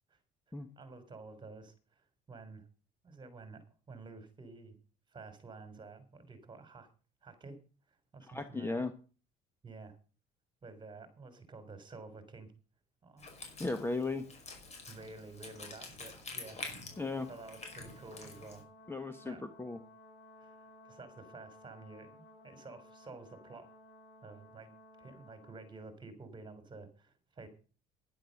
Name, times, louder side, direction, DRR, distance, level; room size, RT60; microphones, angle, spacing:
voice 1, 0.8-2.6 3.0-4.8 5.1-6.9 7.2-7.6 7.9-8.9 9.6-10.0 10.6-12.5 13.0-13.3 14.9-16.6 17.3-18.6 19.0-19.5 20.4-23.7 24.2-24.7 25.0-27.5, right 3 dB, 25° right, 10 dB, 3.8 m, -51 dB
voice 2, 8.3-8.9 13.6-14.3 17.0-17.3 18.9-19.8, left 3 dB, 10° left, 10 dB, 1.3 m, -36 dB
Wind instrument woodwind instrument, 13.2-18.6, left 3 dB, 40° left, 5.4 m, -47 dB
Brass instrument, 16.9-25.8, left 1 dB, 70° left, 5.5 m, -58 dB
11.0 x 10.5 x 6.6 m, 0.37 s
cardioid pair, 105°, 18 cm